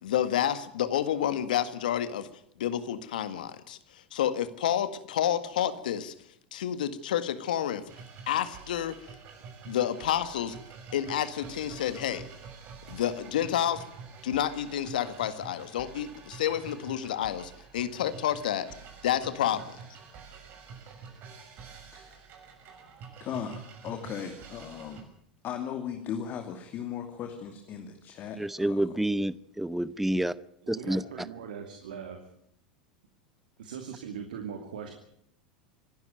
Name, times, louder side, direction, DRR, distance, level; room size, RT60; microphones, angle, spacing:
voice 1, 0.0-2.3 2.6-6.1 6.5-7.8 8.3-9.0 9.7-10.6 10.9-12.2 12.9-13.8 14.2-17.4 17.7-18.7 19.0-19.8, left 10 dB, 75° left, 12 dB, 1.9 m, -29 dB
sound 1, 7.9-25.0, right 5 dB, 45° right, 6.6 m, -47 dB
voice 2, 23.2-25.1 25.4-28.8, left 8 dB, 45° left, 5 dB, 2.6 m, -37 dB
voice 3, 28.4-30.3 30.7-31.0, right 1 dB, 5° right, 18 dB, 0.8 m, -28 dB
voice 4, 30.6-32.2 33.6-34.9, right 7 dB, 75° right, 5 dB, 2.7 m, -40 dB
26.0 x 12.0 x 9.3 m, 0.70 s
hypercardioid pair, 90°, 5 cm